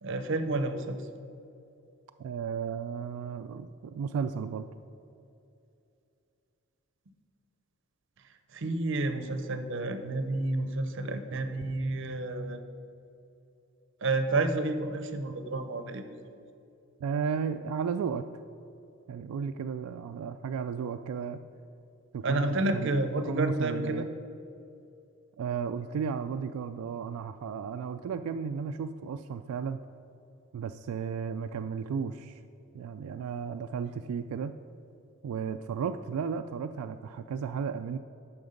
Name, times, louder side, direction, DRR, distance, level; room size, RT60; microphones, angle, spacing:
voice 1, 0.0-1.0 8.5-12.6 14.0-16.2 22.2-24.0, right 2 dB, 55° right, 8 dB, 0.6 m, -30 dB
voice 2, 2.2-4.7 17.0-18.2 19.1-21.4 22.1-23.0 23.3-24.1 25.4-29.8 30.5-32.4 32.7-34.6 35.2-38.0, right 6 dB, 85° right, 8 dB, 0.3 m, -34 dB
9.5 x 6.0 x 5.1 m, 2.7 s
head